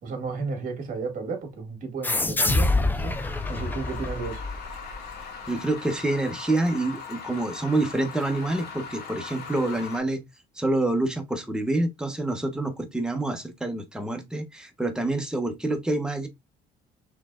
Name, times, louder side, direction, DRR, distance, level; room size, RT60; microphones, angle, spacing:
voice 1, 0.0-3.2 3.5-4.4, right 4 dB, 50° right, 2.0 m, -33 dB
sound 1, 2.0-5.2, left 2 dB, 10° left, 0.5 m, -26 dB
sound 2, 3.0-10.0, left 5 dB, 75° left, 1.7 m, -40 dB
voice 2, 5.5-10.2 10.5-16.3, right 2 dB, 5° right, 1.0 m, -27 dB
5.8 x 3.3 x 2.4 m
cardioid pair, 110°, 17 cm